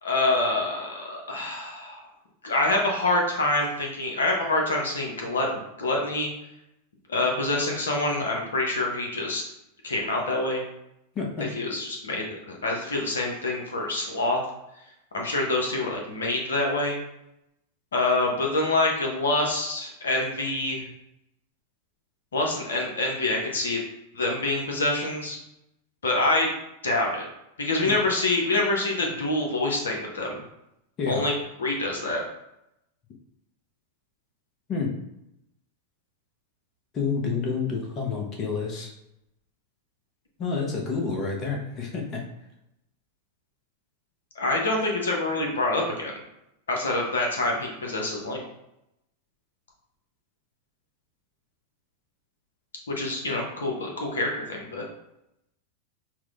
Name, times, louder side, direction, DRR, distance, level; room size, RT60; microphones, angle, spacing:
voice 1, 0.0-2.0 2.4-6.3 7.1-9.4 9.8-10.6 11.4-14.4 15.1-17.0 17.9-20.8 22.3-23.8 24.1-25.4 26.0-26.5 26.8-27.2 27.6-30.4 31.1-31.3 31.6-32.2 44.4-46.1 46.7-48.4 52.9-54.8, left 2 dB, 70° left, 0 dB, 0.7 m, -26 dB
voice 2, 11.2-11.5 31.0-31.2 34.7-34.9 36.9-38.9 40.4-42.2, left 5 dB, 30° left, 0 dB, 0.7 m, -29 dB
5.8 x 2.1 x 2.4 m, 0.85 s
figure-of-eight pair, 90°, 0 cm